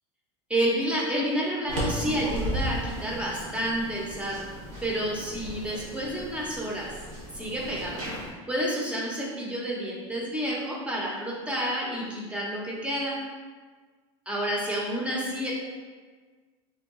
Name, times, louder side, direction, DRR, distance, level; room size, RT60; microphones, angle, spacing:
voice 1, 0.5-4.5 4.8-6.9 7.3-8.0 8.5-13.2 14.3-15.5, equal, 10° right, -4 dB, 0.6 m, -29 dB
sound 1, 1.7-8.3, equal, 90° right, 1.1 m, -35 dB
3.0 x 2.2 x 3.5 m, 1.5 s
supercardioid pair, 125°, 15 cm